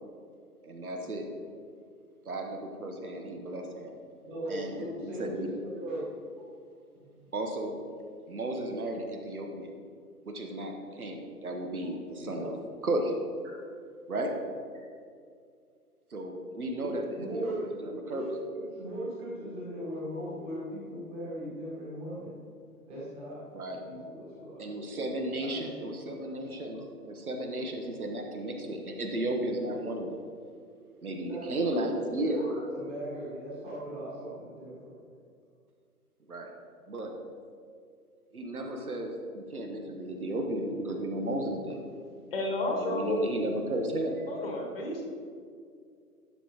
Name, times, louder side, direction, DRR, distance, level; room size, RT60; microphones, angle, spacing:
voice 1, 0.6-1.3 2.2-3.9 4.5-5.5 7.3-7.7 8.3-9.7 10.2-12.6 12.8-13.1 14.1-14.3 16.1-18.2 23.5-23.8 24.6-30.2 31.0-32.4 36.3-36.5 36.9-37.1 38.3-41.8 42.8-44.3, right 1 dB, 65° right, 3 dB, 1.3 m, -34 dB
voice 2, 4.2-6.1 6.9-7.3 12.2-12.5 16.8-17.6 18.1-22.4 22.9-23.5 23.8-24.7 25.4-25.9 26.1-26.3 31.3-31.7 32.0-34.9, equal, 10° right, -7 dB, 1.9 m, -38 dB
voice 3, 42.3-43.3 44.3-45.0, left 2 dB, 35° left, 0 dB, 1.5 m, -31 dB
11.5 x 6.7 x 3.0 m, 2.3 s
figure-of-eight pair, 140°, 47 cm